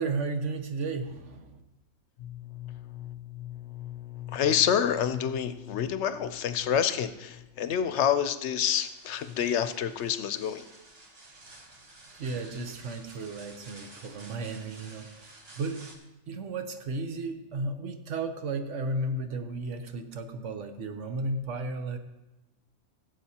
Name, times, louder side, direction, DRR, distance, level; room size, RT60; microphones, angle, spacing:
voice 1, 0.0-1.6 12.1-15.3 15.6-15.9 16.3-22.0, right 3 dB, 70° right, 7 dB, 1.2 m, -34 dB
voice 2, 2.2-10.6, left 9 dB, 70° left, 11 dB, 0.8 m, -29 dB
sound 1, 8.7-16.0, right 2 dB, 55° right, 1.4 m, -51 dB
16.5 x 7.8 x 2.8 m, 1.0 s
omnidirectional pair, 1.3 m